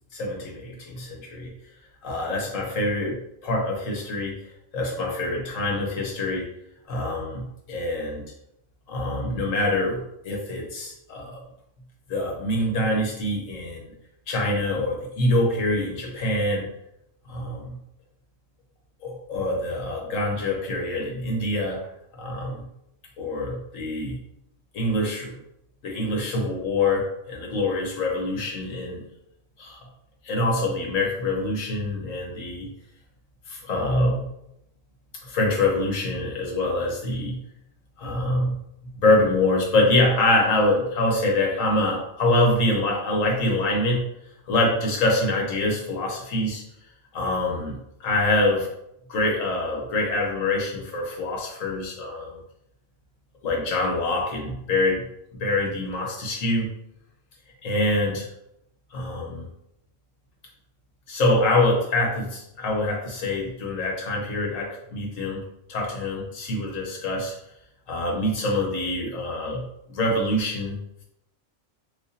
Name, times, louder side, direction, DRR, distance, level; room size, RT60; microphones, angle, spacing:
voice 1, 0.1-1.5 2.0-3.2 3.4-4.3 4.7-6.5 6.9-8.2 8.9-11.3 12.1-13.9 14.3-16.7 17.3-17.8 19.0-21.8 22.1-22.6 23.2-24.2 24.7-25.3 25.8-29.0 29.6-29.9 30.2-32.7 33.5-34.3 35.2-37.4 38.0-38.6 39.0-44.0 44.5-46.6 47.1-48.7 49.1-52.3 53.4-55.0 55.3-56.7 57.6-58.3 58.9-59.5 61.1-65.4 65.7-67.3 67.9-69.6 69.9-70.8, left 2 dB, 85° left, -1 dB, 1.3 m, -25 dB
4.7 x 2.3 x 2.6 m, 0.79 s
omnidirectional pair, 1.3 m